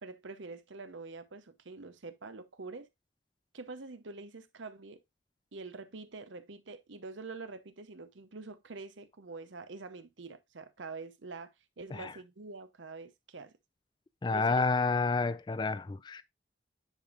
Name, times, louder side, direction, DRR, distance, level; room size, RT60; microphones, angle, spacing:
voice 1, 0.0-2.9 3.5-5.0 5.5-13.5 14.3-14.6, right 3 dB, 85° right, 0.8 m, -46 dB
voice 2, 14.2-16.2, left 4 dB, 25° left, 0.3 m, -29 dB
10.0 x 5.1 x 2.4 m
head